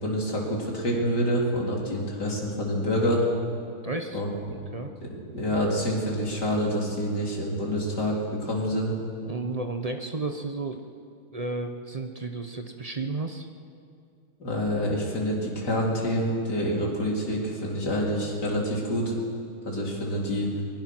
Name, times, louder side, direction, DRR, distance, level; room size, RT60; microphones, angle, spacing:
voice 1, 0.0-3.3 4.1-4.4 5.0-9.0 14.4-19.2 19.6-20.6, equal, 55° left, -3 dB, 4.3 m, -27 dB
voice 2, 3.8-4.2 4.5-4.9 9.3-10.8 11.3-13.5, right 3 dB, 45° right, 5 dB, 0.4 m, -32 dB
23.0 x 21.5 x 6.1 m, 2.4 s
omnidirectional pair, 2.2 m